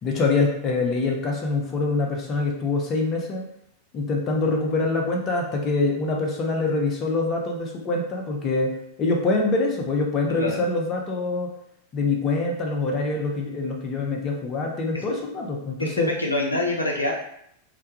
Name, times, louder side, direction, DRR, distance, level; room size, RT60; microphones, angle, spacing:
voice 1, 0.0-3.5 3.9-8.7 9.0-11.5 11.9-16.1, left 3 dB, 30° left, 1 dB, 0.5 m, -25 dB
voice 2, 10.3-10.6 14.9-15.0 15.8-17.1, left 2 dB, 85° left, -1 dB, 0.4 m, -26 dB
2.2 x 2.2 x 2.8 m, 0.73 s
figure-of-eight pair, 90°, 0 cm